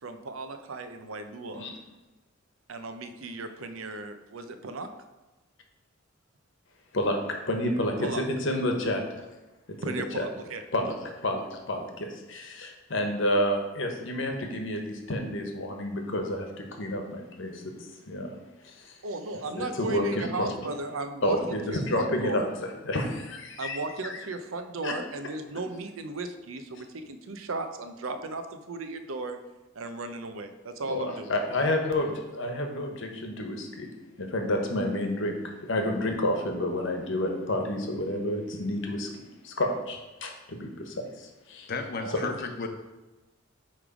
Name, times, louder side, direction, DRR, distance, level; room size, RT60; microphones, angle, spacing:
voice 1, 0.0-1.7 2.7-4.9 8.0-8.2 9.8-10.6 19.0-22.5 23.6-29.4 29.7-31.4 42.0-42.2, right 3 dB, 85° right, 8 dB, 0.7 m, -36 dB
voice 2, 7.5-9.0 9.8-10.2 10.7-10.9 11.2-17.6 18.1-18.3 18.6-19.0 19.5-20.5 21.2-22.4 22.8-23.8 24.0-24.2 24.8-24.9 30.9-33.9 34.2-39.1 39.4-41.7, left 1 dB, 65° left, 3 dB, 1.1 m, -29 dB
voice 3, 41.7-42.7, left 3 dB, 50° left, 5 dB, 0.8 m, -33 dB
8.7 x 3.3 x 5.0 m, 1.1 s
head